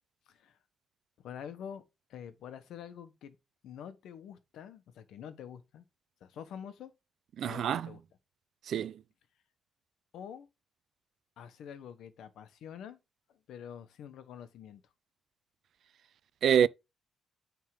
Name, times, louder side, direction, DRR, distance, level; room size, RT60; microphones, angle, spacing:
voice 1, 0.3-0.6 1.2-1.8 2.1-3.4 3.6-5.8 6.2-6.9 7.4-8.0 10.1-10.5 11.4-13.0 13.5-14.8, left 8 dB, 85° left, 1.2 m, -46 dB
voice 2, 7.4-7.9 8.7-9.0 16.4-16.7, right 9 dB, 65° right, 0.4 m, -26 dB
9.3 x 3.7 x 4.9 m
cardioid pair, 145°, 0 cm